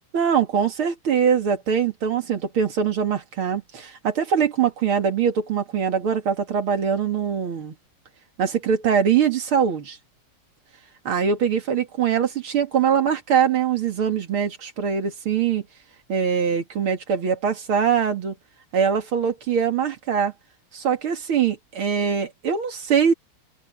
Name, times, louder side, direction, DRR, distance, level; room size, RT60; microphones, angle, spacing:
voice 1, 0.1-7.7 8.4-10.0 11.0-15.6 16.1-18.3 18.7-20.3 20.7-23.1, right 7 dB, 80° right, 3.0 m, -22 dB
open air
omnidirectional pair, 2.3 m